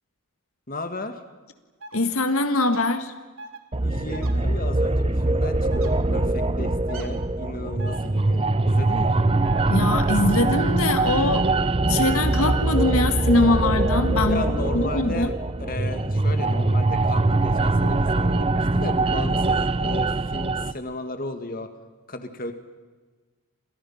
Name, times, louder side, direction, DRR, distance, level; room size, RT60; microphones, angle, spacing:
voice 1, 0.7-1.2 3.8-9.3 14.2-15.3 15.6-21.7 22.1-22.5, left 2 dB, 40° left, 7 dB, 2.2 m, -35 dB
sound 1, 1.8-2.0 2.6-2.8 3.4-3.6 4.1-4.3 5.7-5.9 6.9-7.1 7.8-8.0 9.4-9.6 10.4-10.6 11.2-11.4 12.1-12.3 13.1-13.3 13.8-13.9, right 2 dB, 70° right, 3.5 m, -39 dB
voice 2, 1.9-3.1 9.7-11.5 11.8-14.4 14.7-15.3, left 2 dB, 75° left, 8 dB, 1.8 m, -22 dB
sound 2, 3.7-20.7, right 2 dB, 25° right, 0.8 m, -22 dB
29.5 x 27.5 x 5.9 m, 1.3 s
head